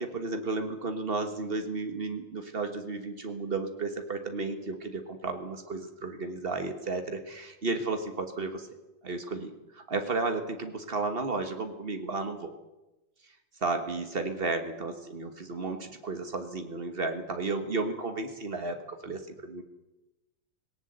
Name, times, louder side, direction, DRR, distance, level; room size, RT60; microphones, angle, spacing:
voice 1, 0.0-8.7 9.0-12.5 13.6-19.6, right 3 dB, 90° right, 6 dB, 0.5 m, -33 dB
18.5 x 18.0 x 7.9 m, 1.0 s
omnidirectional pair, 3.4 m